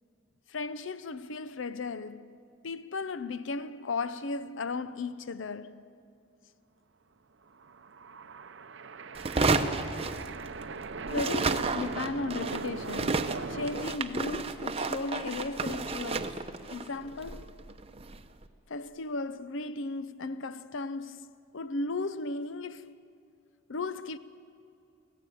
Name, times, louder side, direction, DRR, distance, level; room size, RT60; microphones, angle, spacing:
voice 1, 0.5-2.4 2.6-5.9 11.1-16.4 16.7-17.6 18.7-22.9 23.7-24.2, left 3 dB, 70° left, 0.6 m, -36 dB
sound 1, 7.5-13.9, right 4 dB, 60° right, 0.6 m, -40 dB
sound 2, 9.1-10.8 11.1-18.3, right 3 dB, 30° right, 0.8 m, -32 dB
23.5 x 16.0 x 9.1 m
head